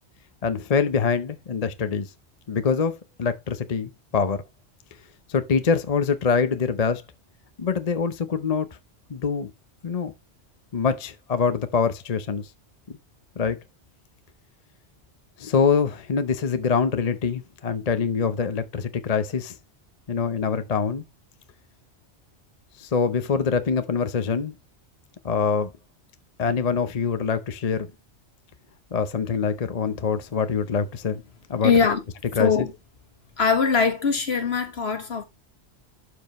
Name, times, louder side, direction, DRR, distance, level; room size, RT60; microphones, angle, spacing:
voice 1, 0.4-2.1 2.5-2.9 3.2-4.4 5.3-7.0 7.6-8.7 9.1-9.5 9.8-10.1 10.7-12.5 13.4-13.6 15.4-19.6 20.1-21.0 22.8-24.5 25.2-25.7 26.4-27.9 28.9-31.2 31.5-31.7 32.4-32.5, left 5 dB, 40° left, 0.7 m, -24 dB
voice 2, 31.6-32.0 32.4-32.7 33.4-35.2, left 5 dB, 65° left, 1.8 m, -21 dB
12.0 x 4.9 x 3.0 m
omnidirectional pair, 1.2 m